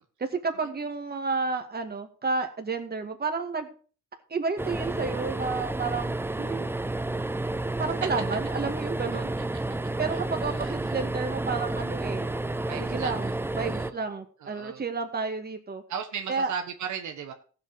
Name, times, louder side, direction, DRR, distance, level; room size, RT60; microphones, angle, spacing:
voice 1, 0.2-3.7 4.3-6.6 7.8-9.3 10.0-12.3 12.8-15.8 16.3-16.5, right 4 dB, 30° right, 6 dB, 2.1 m, -31 dB
sound 1, 4.6-13.9, right 2 dB, 10° right, 0.6 m, -31 dB
voice 2, 10.4-10.9 12.6-13.3 13.6-14.0 14.4-14.8 15.9-17.3, right 7 dB, 70° right, 5 dB, 1.4 m, -36 dB
14.5 x 7.9 x 4.9 m, 0.41 s
cardioid pair, 90°, 30 cm